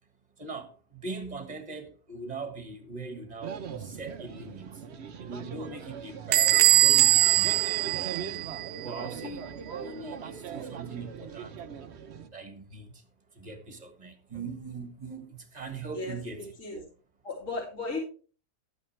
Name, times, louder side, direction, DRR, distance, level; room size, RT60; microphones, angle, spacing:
voice 1, 0.9-4.7 5.2-8.4 8.8-9.5 9.7-11.6 12.3-12.9 13.4-16.4, right 4 dB, 25° right, 1.6 m, -40 dB
sound 1, 3.4-12.3, right 7 dB, 50° right, 0.9 m, -41 dB
Bell / Squeak, 6.3-8.8, right 14 dB, 70° right, 1.2 m, -22 dB
voice 2, 15.9-16.8 17.2-18.0, left 3 dB, 50° left, 3.1 m, -36 dB
12.0 x 8.7 x 3.3 m
omnidirectional pair, 1.7 m